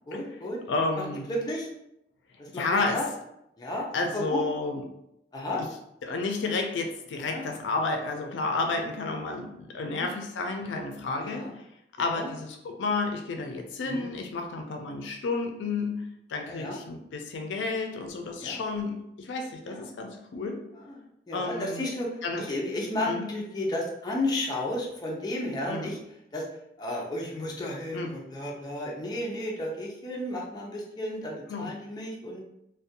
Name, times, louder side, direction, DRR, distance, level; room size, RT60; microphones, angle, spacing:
voice 1, 0.1-0.6 1.0-1.7 2.4-2.6 2.9-3.1 3.6-4.4 5.3-5.6 7.2-7.4 8.7-8.8 9.9-10.1 11.2-11.5 12.1-12.3 13.8-14.1 16.4-16.8 18.4-18.6 19.6-19.9 20.7-26.0 26.3-26.4 26.8-32.4, left 1 dB, 25° left, -2 dB, 0.4 m, -33 dB
voice 2, 0.7-1.2 2.5-3.0 3.9-4.8 6.0-11.4 12.0-20.6 21.3-21.8 22.2-22.4 23.1-23.3 25.7-25.9 27.9-28.1 31.5-31.7, left 3 dB, 85° left, 4 dB, 0.4 m, -31 dB
2.5 x 2.1 x 2.6 m, 0.81 s
head